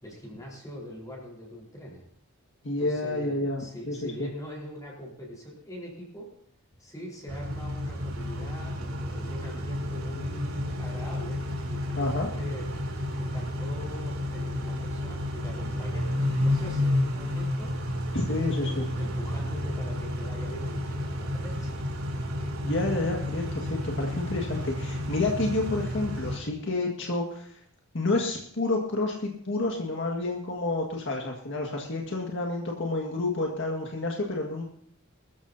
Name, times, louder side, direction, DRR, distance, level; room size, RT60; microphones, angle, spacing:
voice 1, 0.0-2.0 2.8-6.3 6.8-12.7 13.2-17.8 18.3-21.7, equal, 15° left, -3 dB, 4.4 m, -42 dB
voice 2, 2.6-3.6 3.9-4.1 12.0-12.3 18.1-18.7 22.6-27.6 27.9-34.7, left 2 dB, 60° left, 0 dB, 1.9 m, -29 dB
Car / Idling / Accelerating revving vroom, 7.3-26.4, left 1 dB, 85° right, 3.5 m, -31 dB
21.5 x 14.0 x 2.8 m, 0.63 s
head